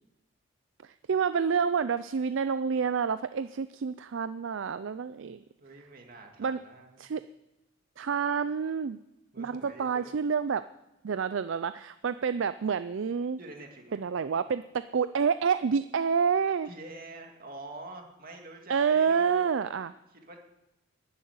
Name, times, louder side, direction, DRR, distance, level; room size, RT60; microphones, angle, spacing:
voice 1, 0.8-5.4 6.4-6.6 7.0-7.2 8.0-9.0 9.4-10.6 11.0-13.4 13.9-16.7 18.7-19.9, right 6 dB, 60° right, 13 dB, 0.4 m, -28 dB
voice 2, 5.6-7.1 9.3-10.1 13.4-14.0 16.7-19.4 20.1-20.4, right 2 dB, 45° right, 2 dB, 2.3 m, -46 dB
11.0 x 10.5 x 9.5 m, 0.96 s
head